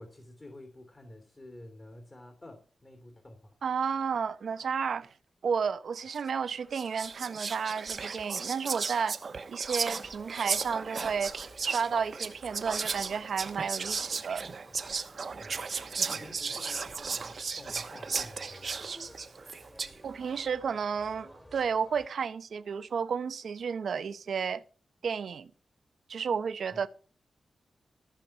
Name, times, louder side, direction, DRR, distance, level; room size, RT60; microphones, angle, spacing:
voice 1, 0.0-3.6 15.4-18.9 26.7-26.8, left 1 dB, 30° left, 2.8 m, -50 dB
voice 2, 3.6-5.1 5.4-9.2 9.5-11.3 11.6-14.4 20.0-24.6 25.0-25.5 26.1-26.9, right 6 dB, 75° right, 0.8 m, -32 dB
Whispering, 6.2-6.4 6.7-20.0, right 5 dB, 55° right, 1.0 m, -35 dB
sound 1, 9.8-22.1, equal, 10° left, 2.1 m, -54 dB
14.5 x 5.9 x 5.9 m
wide cardioid pair, 90°, 0 cm